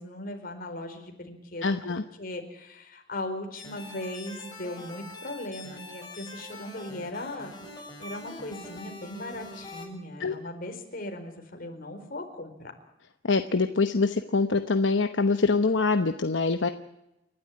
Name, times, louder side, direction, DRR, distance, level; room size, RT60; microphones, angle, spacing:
voice 1, 0.0-1.7 2.2-12.7, left 1 dB, 50° left, 5 dB, 4.5 m, -38 dB
voice 2, 1.6-2.0 10.2-10.3 13.3-16.7, left 3 dB, 70° left, 8 dB, 1.0 m, -24 dB
sound 1, 3.5-9.9, left 2 dB, 20° left, 7.2 m, -44 dB
29.0 x 12.5 x 9.9 m, 0.90 s
head